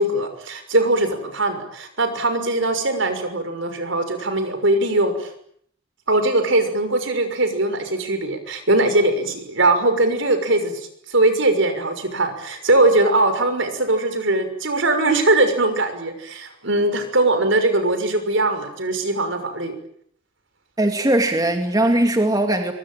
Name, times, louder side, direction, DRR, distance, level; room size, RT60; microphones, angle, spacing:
voice 1, 0.0-5.3 6.1-19.7, right 2 dB, 65° right, 8 dB, 6.2 m, -20 dB
voice 2, 20.8-22.7, right 1 dB, 20° right, 5 dB, 2.6 m, -19 dB
25.0 x 23.5 x 9.2 m, 0.68 s
head